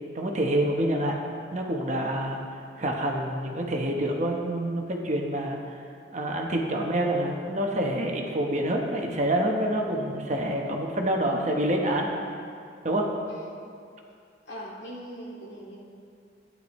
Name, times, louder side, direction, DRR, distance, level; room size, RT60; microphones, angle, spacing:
voice 1, 0.1-1.1 1.5-2.4 2.8-5.7 6.1-12.1 12.8-13.1, right 1 dB, 40° right, 1 dB, 1.0 m, -27 dB
voice 2, 14.5-15.8, equal, 70° left, -4 dB, 2.2 m, -41 dB
12.5 x 9.4 x 3.2 m, 2.4 s
head